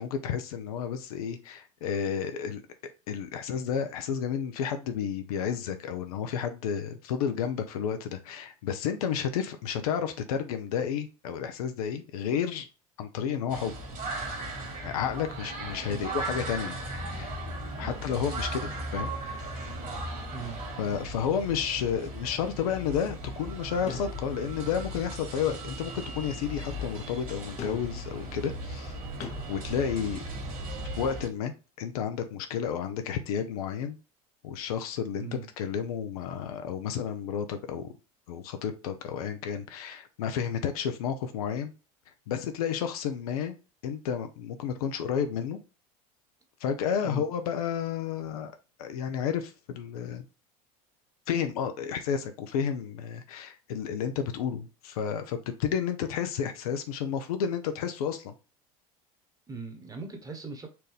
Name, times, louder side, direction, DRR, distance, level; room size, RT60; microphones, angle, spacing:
voice 1, 0.0-2.6 3.1-12.7 13.0-13.7 14.8-16.8 17.0-17.3 17.8-19.5 20.8-28.9 29.2-30.2 31.0-31.5 31.8-34.0 34.4-37.9 38.3-41.7 42.3-43.5 43.8-45.6 46.6-50.2 51.3-58.3, left 8 dB, 75° left, 0.6 m, -31 dB
sound 1, 13.5-31.3, right 1 dB, 45° right, 1.9 m, -37 dB
voice 2, 17.8-18.3 20.3-20.6 35.2-35.5 47.0-47.2 59.5-60.7, right 5 dB, 20° right, 1.2 m, -40 dB
sound 2, 23.9-24.8 27.6-28.2 29.2-29.3, left 6 dB, 35° left, 0.8 m, -41 dB
4.4 x 2.6 x 3.3 m
hypercardioid pair, 80°, 19 cm